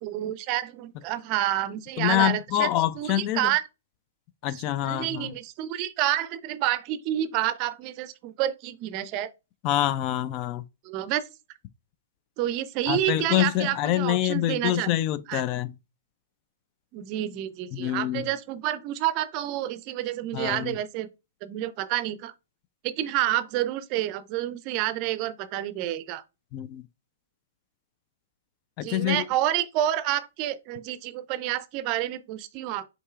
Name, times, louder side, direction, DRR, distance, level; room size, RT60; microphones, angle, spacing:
voice 1, 0.0-2.7 3.0-3.6 4.5-9.3 10.8-11.2 12.4-14.9 15.3-15.4 16.9-21.1 21.4-22.3 22.8-26.2 28.8-32.9, right 13 dB, 40° right, 0.5 m, -29 dB
voice 2, 2.0-3.5 4.4-5.3 9.6-10.6 12.9-15.7 17.7-18.3 20.3-20.8 26.5-26.8 28.8-29.2, left 13 dB, 35° left, 0.4 m, -26 dB
5.4 x 3.9 x 2.4 m
hypercardioid pair, 120°, 0 cm